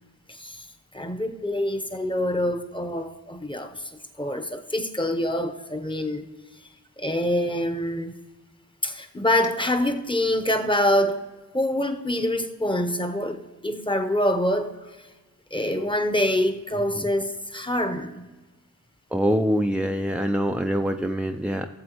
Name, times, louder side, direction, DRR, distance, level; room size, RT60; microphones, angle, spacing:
voice 1, 0.3-0.7 0.9-3.9 4.2-6.2 7.0-8.1 8.8-11.2 11.5-14.7 15.5-18.3, left 1 dB, 15° left, 0.9 m, -25 dB
voice 2, 19.1-21.7, equal, 5° right, 0.4 m, -24 dB
16.0 x 7.4 x 3.0 m
wide cardioid pair, 70°, 33 cm